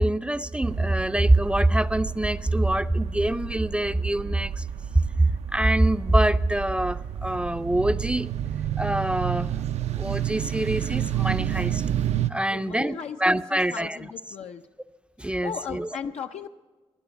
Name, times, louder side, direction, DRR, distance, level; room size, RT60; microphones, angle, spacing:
voice 1, 0.0-4.5 5.2-8.3 8.8-9.5 10.0-11.8 12.3-14.0 15.2-15.9, right 1 dB, 10° right, 10 dB, 0.4 m, -24 dB
sound 1, 0.6-12.3, right 10 dB, 85° right, 0.5 m, -30 dB
voice 2, 12.5-14.6 15.2-16.5, left 7 dB, 85° left, 5 dB, 0.6 m, -36 dB
16.0 x 10.5 x 8.1 m, 1.4 s
wide cardioid pair, 105°, 11 cm